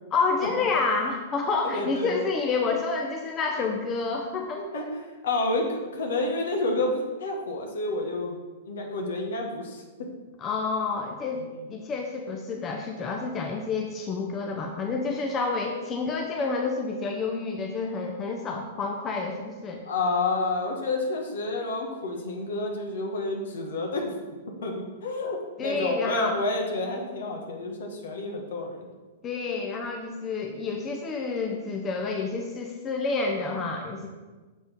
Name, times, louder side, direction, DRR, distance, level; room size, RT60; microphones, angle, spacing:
voice 1, 0.1-4.7 10.4-19.8 25.6-26.4 29.2-34.1, left 4 dB, 25° left, 1 dB, 0.8 m, -29 dB
voice 2, 1.6-2.2 4.5-8.4 8.7-9.8 11.3-11.4 19.8-24.1 24.6-28.9, left 2 dB, 65° left, 2 dB, 1.4 m, -29 dB
6.5 x 4.2 x 5.2 m, 1.3 s
figure-of-eight pair, 105°, 0 cm